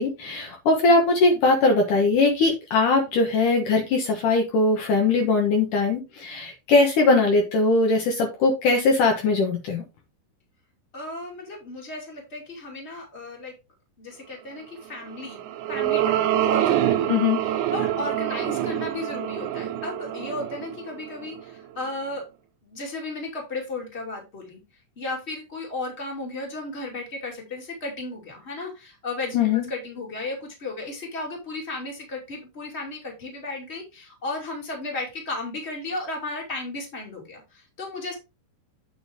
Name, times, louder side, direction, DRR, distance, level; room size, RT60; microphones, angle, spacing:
voice 1, 0.0-9.8 17.1-17.4 29.3-29.7, left 3 dB, 65° left, 2 dB, 2.7 m, -20 dB
voice 2, 10.9-13.5 14.0-15.4 15.7-17.1 17.4-22.2 22.6-24.6 25.0-29.4 29.7-38.1, left 2 dB, 20° left, 0 dB, 2.7 m, -34 dB
sound 1, 15.1-21.6, right 12 dB, 85° right, 1.7 m, -26 dB
8.6 x 5.5 x 3.7 m, 0.26 s
omnidirectional pair, 4.2 m